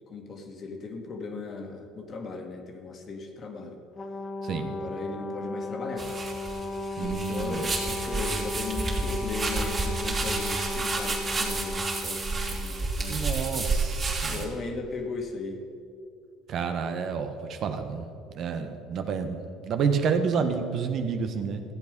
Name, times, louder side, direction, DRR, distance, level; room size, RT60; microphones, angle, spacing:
voice 1, 0.1-3.8 4.5-6.1 7.0-13.3 14.3-15.6, left 3 dB, 45° left, 3 dB, 1.8 m, -37 dB
Brass instrument, 4.0-12.7, left 2 dB, 25° left, 0.8 m, -35 dB
voice 2, 4.4-4.7 7.0-7.6 13.1-14.5 16.5-18.0 18.3-21.6, right 6 dB, 55° right, 7 dB, 1.1 m, -29 dB
sound 1, 6.0-14.4, right 3 dB, 30° right, 2.9 m, -30 dB
14.5 x 8.3 x 5.3 m, 2.5 s
supercardioid pair, 85°, 0 cm